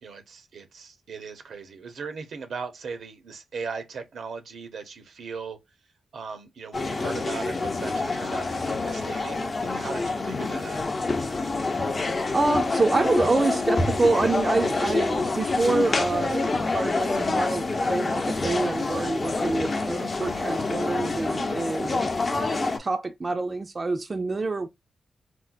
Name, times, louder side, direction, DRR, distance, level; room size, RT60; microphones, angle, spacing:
voice 1, 0.0-5.6 6.1-10.9, right 5 dB, 80° right, 0.8 m, -38 dB
sound 1, 6.7-22.8, left 3 dB, 45° left, 0.7 m, -27 dB
voice 2, 12.3-24.7, right 3 dB, 35° right, 0.4 m, -27 dB
4.3 x 2.0 x 2.5 m
cardioid pair, 75°, 0 cm